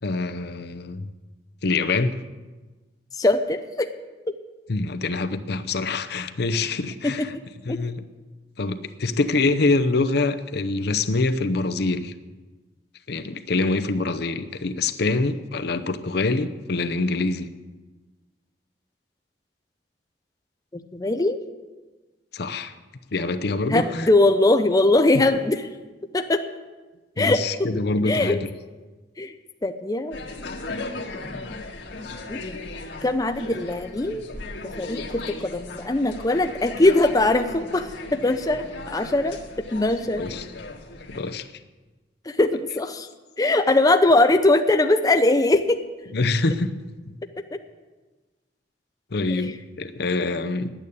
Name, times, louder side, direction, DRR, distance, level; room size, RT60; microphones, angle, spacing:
voice 1, 0.0-1.1 1.6-2.1 4.7-7.3 7.7-8.0 8.6-12.1 13.1-17.5 22.3-22.7 23.1-24.1 27.2-28.4 30.7-30.9 40.2-40.4 41.1-41.5 46.1-46.7 47.0-47.2 49.1-50.7, left 3 dB, 65° left, 10 dB, 0.7 m, -25 dB
voice 2, 3.2-3.9 7.0-7.3 7.7-7.8 20.7-21.4 23.7-25.7 26.1-26.4 27.2-27.4 28.0-28.4 29.2-29.3 29.6-30.2 32.3-32.6 33.0-34.3 34.6-39.4 39.7-40.3 42.3-43.1 43.4-45.8 49.4-49.5, left 2 dB, 20° left, 7 dB, 0.5 m, -21 dB
sound 1, 30.1-41.2, left 2 dB, 90° left, 1.6 m, -37 dB
10.5 x 9.0 x 8.4 m, 1.3 s
head